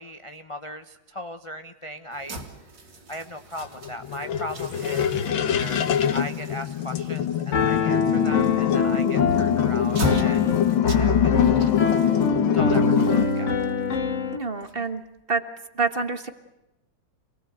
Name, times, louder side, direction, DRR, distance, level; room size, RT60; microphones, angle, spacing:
voice 1, 0.0-2.4 3.1-5.9 6.1-10.6 11.0-11.7 12.5-13.5, equal, 25° left, 7 dB, 0.7 m, -38 dB
sound 1, 2.1-15.2, equal, 65° right, 3.2 m, -38 dB
sound 2, 3.6-13.2, left 9 dB, 90° left, 1.9 m, -23 dB
Piano, 7.5-14.4, left 4 dB, 45° left, 1.3 m, -24 dB
voice 2, 14.3-15.0 15.3-15.4 15.7-16.3, right 4 dB, 30° right, 8 dB, 1.6 m, -26 dB
27.0 x 20.0 x 7.9 m, 0.95 s
omnidirectional pair, 2.1 m